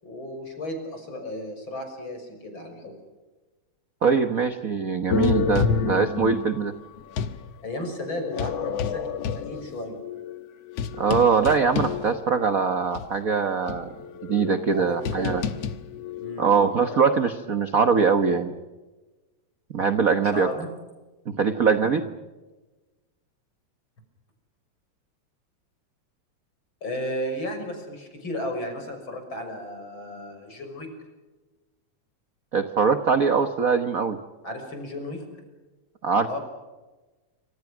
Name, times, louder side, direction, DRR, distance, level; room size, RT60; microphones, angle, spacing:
voice 1, 0.0-2.9 7.6-10.0 14.7-15.3 16.2-16.4 20.2-20.7 26.8-30.9 34.4-35.3 36.3-36.4, left 1 dB, 40° left, 5 dB, 7.0 m, -34 dB
voice 2, 4.0-6.7 11.0-13.9 14.2-15.4 16.4-18.5 19.7-20.5 21.3-22.0 32.5-34.2 36.0-36.4, right 5 dB, 50° right, 8 dB, 1.0 m, -22 dB
sound 1, 5.1-7.4 8.2-12.5 12.9-13.0 13.7-17.2, left 7 dB, 65° left, 2.3 m, -29 dB
28.0 x 26.5 x 6.2 m, 1.2 s
omnidirectional pair, 3.3 m